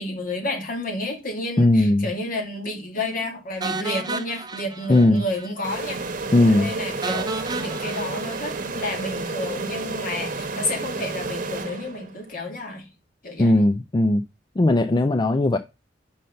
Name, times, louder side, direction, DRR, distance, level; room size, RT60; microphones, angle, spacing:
voice 1, 0.0-6.0 6.4-12.9 13.2-13.6, left 2 dB, 50° left, 2.3 m, -31 dB
voice 2, 1.6-2.1 4.9-5.2 6.3-6.7 13.4-14.2 14.6-15.6, left 2 dB, 25° left, 0.4 m, -18 dB
sound 1, 3.6-5.5 5.8-5.9 6.2-6.3 7.0-9.3, right 3 dB, 25° right, 0.7 m, -33 dB
sound 2, 5.6-12.3, right 3 dB, 45° right, 1.0 m, -31 dB
5.6 x 5.4 x 6.4 m
head